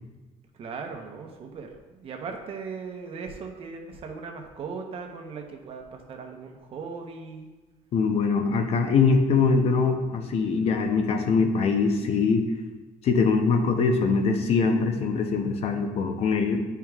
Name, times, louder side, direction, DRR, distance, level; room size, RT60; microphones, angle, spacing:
voice 1, 0.5-7.5, right 5 dB, 45° right, 3 dB, 0.9 m, -38 dB
voice 2, 7.9-12.4 13.0-16.6, left 4 dB, 50° left, 5 dB, 0.7 m, -23 dB
10.5 x 4.6 x 2.4 m, 1.2 s
cardioid pair, 140°, 13 cm